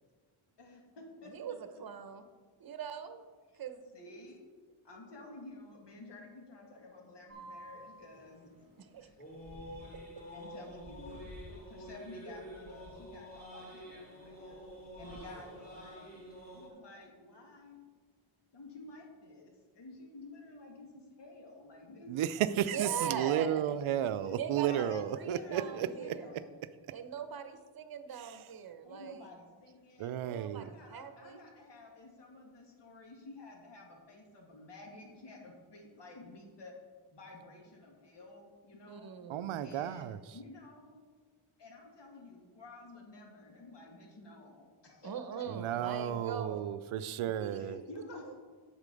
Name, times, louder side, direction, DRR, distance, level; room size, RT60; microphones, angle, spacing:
voice 1, 0.6-1.3 3.9-4.5 4.8-8.7 9.0-9.1 10.3-11.2 11.7-14.6 15.0-16.2 16.5-17.9 18.5-22.2 24.1-24.4 24.6-26.6 28.8-30.2 30.6-36.7 37.1-39.1 39.6-41.1 41.6-46.2 47.5-48.3, left 2 dB, 55° left, 0 dB, 2.1 m, -51 dB
voice 2, 1.3-2.2 2.6-3.2 3.6-3.8 8.8-9.1 9.9-10.0 22.5-23.8 24.4-26.3 26.9-29.3 30.2-31.4 38.9-39.5 45.0-46.6 47.1-47.8 48.3-48.4, right 7 dB, 45° right, 9 dB, 0.9 m, -42 dB
sound 1, 7.3-16.7, equal, 20° left, 2.6 m, -48 dB
voice 3, 22.1-26.1 30.0-30.7 39.3-40.2 45.5-47.8, right 10 dB, 80° right, 14 dB, 0.6 m, -33 dB
8.2 x 6.7 x 5.3 m, 1.4 s
cardioid pair, 110°, 49 cm